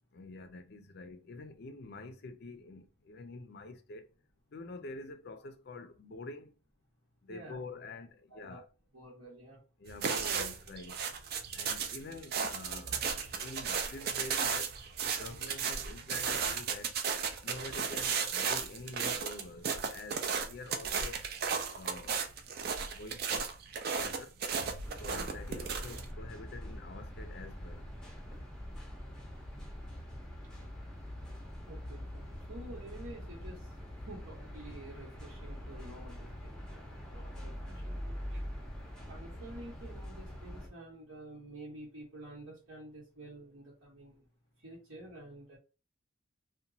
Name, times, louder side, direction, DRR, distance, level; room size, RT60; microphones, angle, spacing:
voice 1, 0.1-4.1 4.5-6.5 7.2-8.7 9.8-11.0 11.5-14.8 15.1-17.0 17.4-21.2 21.7-22.2 22.7-24.4 25.0-27.9, left 2 dB, 50° left, 0.4 m, -47 dB
voice 2, 7.3-7.6 8.3-8.6 8.9-9.6 24.8-25.2 28.3-28.6 31.6-33.8 34.0-38.4 39.1-44.3 44.6-45.6, right 1 dB, 85° right, 1.0 m, -50 dB
sound 1, 9.9-26.1, right 6 dB, 50° right, 0.4 m, -35 dB
sound 2, 24.8-40.7, equal, 5° left, 0.5 m, -44 dB
2.8 x 2.2 x 2.6 m
head